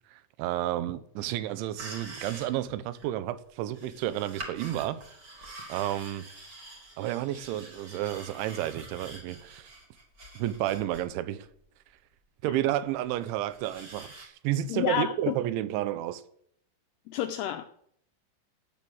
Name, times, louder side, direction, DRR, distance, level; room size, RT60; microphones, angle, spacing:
voice 1, 0.1-5.0 5.4-6.3 7.0-9.7 10.4-11.5 12.4-16.2, right 13 dB, 80° right, 3.3 m, -31 dB
sound 1, 1.8-3.1 3.7-11.1 11.5-11.6 12.9-14.3, right 2 dB, 25° right, 2.9 m, -46 dB
voice 2, 14.7-15.3 17.1-17.6, left 11 dB, 80° left, 2.4 m, -29 dB
16.0 x 9.2 x 7.2 m
omnidirectional pair, 5.4 m